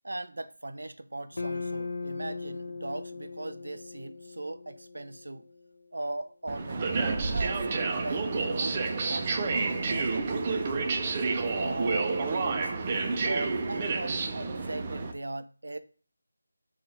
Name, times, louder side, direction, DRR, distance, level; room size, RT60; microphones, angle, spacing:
voice 1, 0.0-5.4 5.9-6.9 7.3-8.8 9.1-10.9 11.5-12.7 13.1-15.8, right 2 dB, 85° right, 0.4 m, -39 dB
sound 1, 1.3-5.7, left 4 dB, 70° left, 0.4 m, -39 dB
sound 2, 6.5-15.1, right 4 dB, 20° right, 0.4 m, -29 dB
3.0 x 2.3 x 4.1 m
figure-of-eight pair, 175°, 0 cm